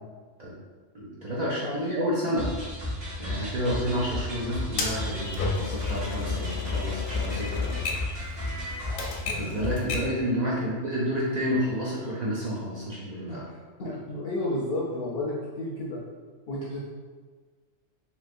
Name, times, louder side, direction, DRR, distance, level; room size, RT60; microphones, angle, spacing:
voice 1, 0.9-2.5 3.2-7.7 9.3-13.4, equal, 75° right, -6 dB, 0.4 m, -30 dB
sound 1, 2.4-9.2, left 1 dB, 55° right, 1.2 m, -34 dB
Typewriter, 4.8-10.2, left 5 dB, 90° left, 1.0 m, -32 dB
voice 2, 13.8-16.0 16.5-16.8, left 1 dB, 65° left, -6 dB, 0.6 m, -32 dB
3.1 x 2.8 x 2.4 m, 1.5 s
omnidirectional pair, 1.3 m